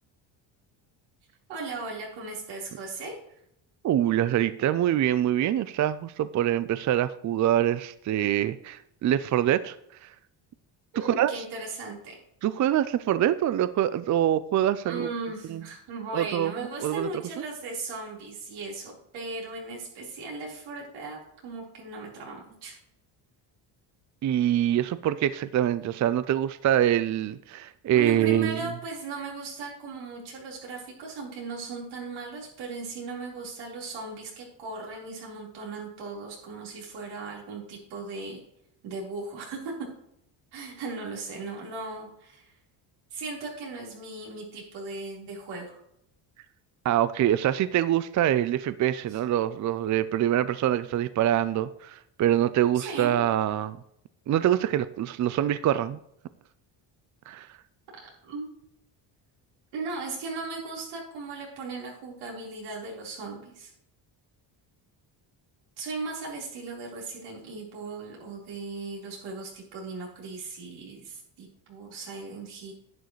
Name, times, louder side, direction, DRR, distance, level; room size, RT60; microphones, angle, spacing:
voice 1, 1.5-3.2 10.9-12.2 14.8-22.8 27.9-38.4 38.8-39.7 40.5-42.5 43.1-45.8 49.1-49.2 52.7-53.2 58.2-58.5 59.7-63.7 65.8-72.7, right 3 dB, 85° right, -3 dB, 4.2 m, -37 dB
voice 2, 3.8-9.8 10.0-10.1 11.0-11.4 12.4-15.1 15.5-15.6 16.1-16.5 16.8-17.1 24.2-28.6 46.8-53.8 54.3-56.0 57.3-57.5, right 11 dB, 40° right, 14 dB, 0.4 m, -25 dB
11.0 x 9.3 x 3.1 m, 0.76 s
cardioid pair, 105°, 47 cm